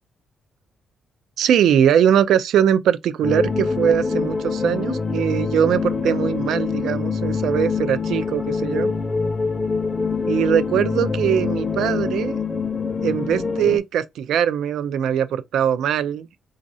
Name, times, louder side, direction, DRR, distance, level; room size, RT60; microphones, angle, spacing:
voice 1, 1.4-8.9 10.3-12.4 13.0-16.3, right 9 dB, 80° right, 0.4 m, -21 dB
sound 1, 3.2-13.8, left 4 dB, 20° left, 0.5 m, -24 dB
4.0 x 2.4 x 2.6 m
cardioid pair, 130°, 0 cm